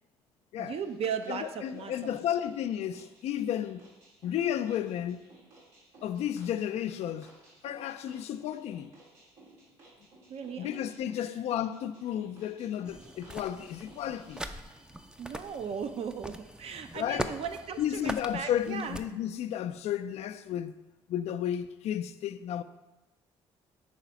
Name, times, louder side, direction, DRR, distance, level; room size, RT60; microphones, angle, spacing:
voice 1, 0.6-2.2 10.3-10.9 15.2-19.0, right 7 dB, 55° right, 0.6 m, -37 dB
sound 1, 0.8-14.5, right 2 dB, 85° right, 1.7 m, -58 dB
voice 2, 1.3-3.9 4.2-5.2 6.0-7.3 7.6-8.9 10.6-14.4 16.9-17.3 17.8-20.7 21.1-22.6, left 10 dB, 65° left, 0.4 m, -33 dB
sound 2, 12.8-19.0, right 1 dB, 5° right, 0.4 m, -41 dB
4.8 x 4.0 x 5.7 m
supercardioid pair, 60°, 12 cm